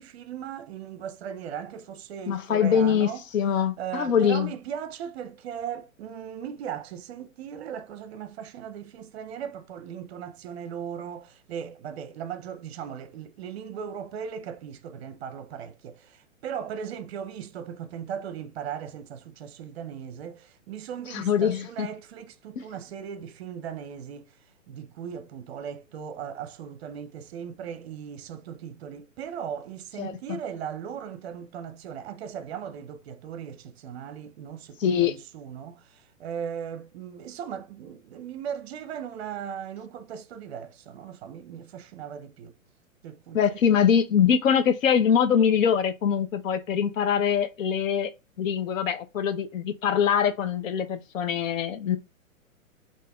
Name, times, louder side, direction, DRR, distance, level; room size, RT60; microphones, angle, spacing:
voice 1, 0.0-3.2 3.5-24.4 24.7-42.5 43.0-43.6, right 8 dB, 50° right, 0.6 m, -38 dB
voice 2, 2.3-4.5 21.1-21.9 22.6-22.7 30.0-30.1 34.8-35.1 43.3-48.1 48.4-52.0, left 8 dB, 70° left, 0.6 m, -23 dB
5.0 x 2.6 x 2.2 m
hypercardioid pair, 130°, 41 cm